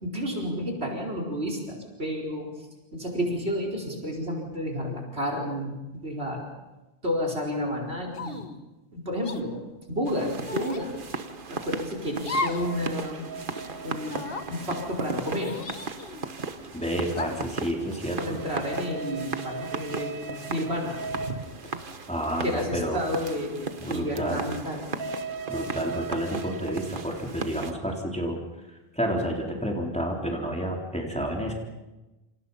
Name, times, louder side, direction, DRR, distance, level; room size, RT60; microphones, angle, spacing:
voice 1, 0.0-6.5 7.0-8.5 8.9-10.9 11.5-13.3 13.8-15.5 18.2-21.0 22.4-24.9, equal, 70° right, -1 dB, 5.0 m, -31 dB
sound 1, 8.1-8.5 9.2-9.4 10.4-10.9 12.2-12.7 13.1-13.2 14.0-14.5 15.4-16.3 17.1-17.5, left 3 dB, 55° left, 1.5 m, -34 dB
sound 2, 10.0-27.7, right 4 dB, 50° right, 1.4 m, -36 dB
voice 2, 16.7-18.4 22.1-23.0 23.8-24.5 25.5-28.4 28.7-31.5, equal, 5° left, 0 dB, 3.8 m, -30 dB
28.5 x 27.5 x 5.6 m, 1.1 s
omnidirectional pair, 1.1 m